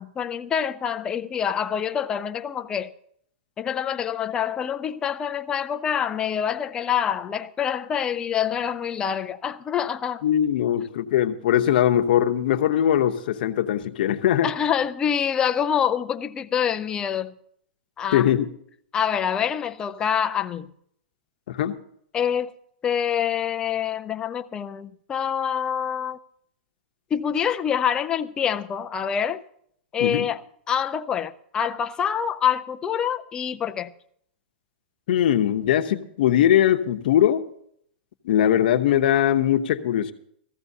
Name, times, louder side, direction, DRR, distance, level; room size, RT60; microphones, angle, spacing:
voice 1, 0.0-2.9 3.6-10.2 14.4-17.3 18.0-18.3 18.9-20.7 22.1-22.5 22.8-26.2 27.1-29.4 29.9-30.4 30.7-33.9, left 8 dB, 15° left, 0.4 m, -26 dB
voice 2, 10.2-14.5 18.1-18.5 21.5-21.8 30.0-30.3 35.1-37.4 38.2-40.1, left 10 dB, 55° left, 0.8 m, -21 dB
18.0 x 14.5 x 2.7 m
hypercardioid pair, 155°, 6 cm